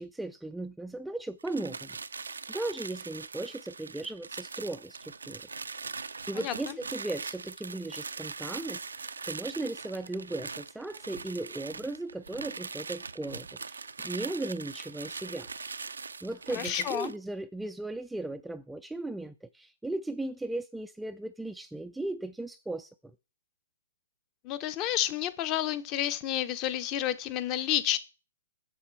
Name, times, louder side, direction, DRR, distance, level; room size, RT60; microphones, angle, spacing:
voice 1, 0.0-5.4 6.3-15.5 16.2-22.9, right 2 dB, 5° right, 0.3 m, -37 dB
sound 1, 1.4-17.2, right 4 dB, 90° right, 0.4 m, -41 dB
voice 2, 16.5-17.1 24.4-28.0, left 12 dB, 30° left, 0.7 m, -30 dB
7.1 x 6.7 x 4.5 m
hypercardioid pair, 130°, 0 cm